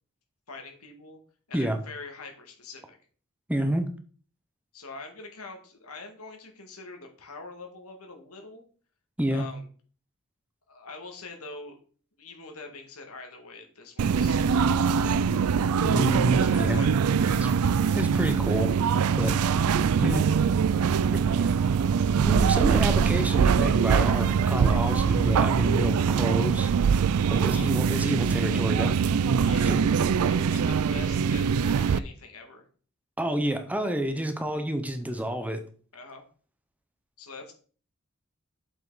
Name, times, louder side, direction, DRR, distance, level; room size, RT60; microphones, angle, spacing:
voice 1, 0.5-1.2 1.5-3.0 4.7-8.6 9.3-9.6 10.7-11.8 12.2-15.0 16.3-17.6 27.2-27.7 29.4-29.9 30.2-32.6 35.9-36.2 37.2-37.5, left 3 dB, 90° left, 3 dB, 1.9 m, -44 dB
voice 2, 3.5-3.8 9.2-9.5 15.8-16.8 17.4-17.5 17.9-18.8 19.2-19.4 20.0-20.2 21.1-21.5 22.2-26.7 27.3-28.9 29.6-29.9 33.2-35.6, right 1 dB, 5° right, 7 dB, 0.7 m, -29 dB
sound 1, 14.0-32.0, right 6 dB, 85° right, 0.4 m, -23 dB
7.4 x 5.7 x 4.0 m, 0.43 s
head